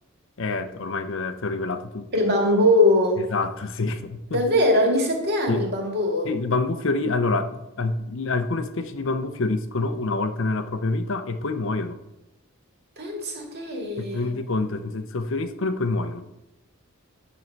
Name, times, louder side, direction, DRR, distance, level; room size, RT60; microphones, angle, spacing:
voice 1, 0.4-2.1 3.3-4.4 5.5-5.7 6.2-12.0 14.0-16.3, left 3 dB, 60° left, 9 dB, 0.6 m, -27 dB
voice 2, 2.1-3.2 4.3-6.3 13.0-14.3, left 1 dB, 50° right, 1 dB, 2.1 m, -21 dB
9.7 x 6.3 x 4.6 m, 0.92 s
head